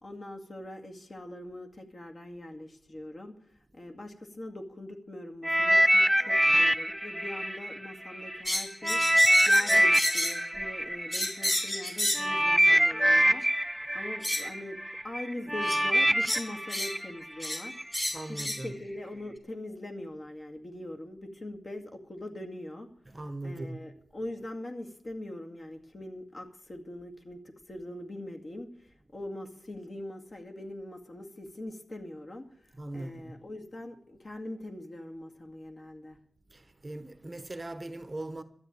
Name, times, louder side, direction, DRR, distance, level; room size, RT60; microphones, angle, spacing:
voice 1, 0.0-3.3 3.7-9.0 9.5-13.6 13.9-14.8 15.0-17.8 18.3-22.9 23.4-32.4 32.9-36.2, left 1 dB, 40° left, 2.1 m, -42 dB
sound 1, 5.4-8.4 8.8-17.8 18.5-18.7, equal, 5° right, 0.6 m, -25 dB
sound 2, 8.5-10.4 11.1-12.3 13.4-13.5 14.2-14.5 15.6-15.8 16.2-17.0 17.4-17.6 17.9-18.6, left 1 dB, 20° left, 3.0 m, -31 dB
voice 2, 18.1-18.8 23.0-23.8 32.7-33.4 36.5-38.4, right 2 dB, 25° right, 1.0 m, -40 dB
13.0 x 9.0 x 8.5 m
wide cardioid pair, 100°, 0 cm